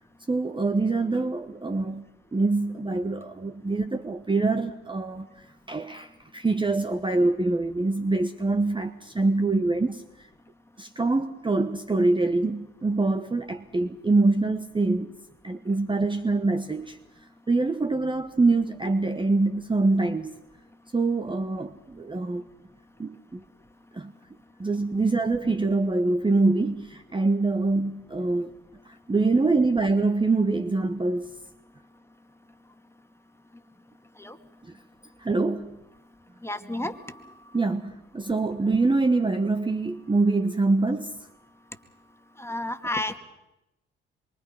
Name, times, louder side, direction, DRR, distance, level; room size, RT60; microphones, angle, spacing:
voice 1, 0.3-2.0 2.3-10.3 10.8-15.2 15.4-17.0 17.5-20.3 20.9-22.4 23.0-23.4 23.9-24.1 24.6-28.6 28.8-31.3 34.6-34.7 35.2-35.8 36.8-36.9 37.5-41.3, right 3 dB, 15° right, 1.2 m, -25 dB
voice 2, 36.4-37.3 42.4-43.2, left 2 dB, 10° left, 2.2 m, -31 dB
27.0 x 23.5 x 5.7 m
hypercardioid pair, 50°, 29 cm